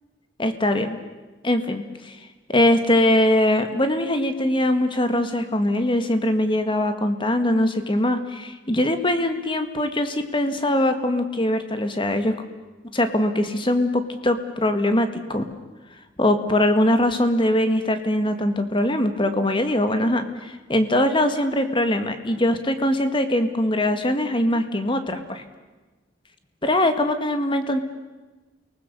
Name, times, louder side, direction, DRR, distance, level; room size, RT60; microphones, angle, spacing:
voice 1, 0.4-1.0 1.4-2.2 2.5-12.3 12.9-15.4 16.2-25.4 26.6-27.8, left 1 dB, 25° left, 8 dB, 1.7 m, -22 dB
29.0 x 19.5 x 6.8 m, 1.2 s
head